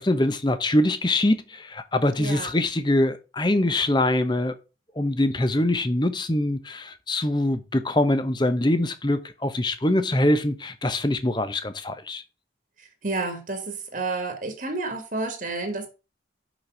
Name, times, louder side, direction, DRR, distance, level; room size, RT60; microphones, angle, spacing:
voice 1, 0.0-4.6 5.0-12.2, left 1 dB, 25° left, 0.8 m, -23 dB
voice 2, 2.2-2.5 12.8-15.9, right 3 dB, 45° right, 1.6 m, -30 dB
6.2 x 6.0 x 6.1 m
head